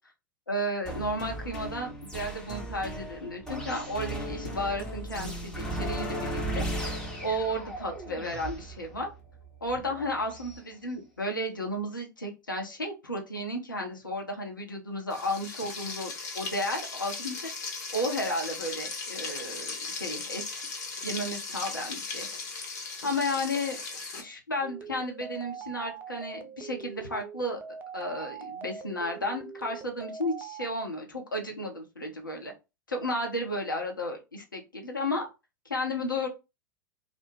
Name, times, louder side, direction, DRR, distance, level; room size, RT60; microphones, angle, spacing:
voice 1, 0.5-9.1 9.6-17.4 17.6-20.7 21.0-22.3 23.0-23.8 24.2-27.6 27.9-32.5 32.9-35.3 35.6-36.3, left 1 dB, 85° left, 2 dB, 0.7 m, -33 dB
sound 1, 0.8-10.6, right 1 dB, 5° left, 0.8 m, -36 dB
Frying (food), 15.1-24.2, left 4 dB, 60° left, 0.9 m, -37 dB
sound 2, 24.6-30.7, right 6 dB, 20° right, 0.3 m, -43 dB
2.4 x 2.0 x 3.1 m, 0.27 s
figure-of-eight pair, 90°, 11 cm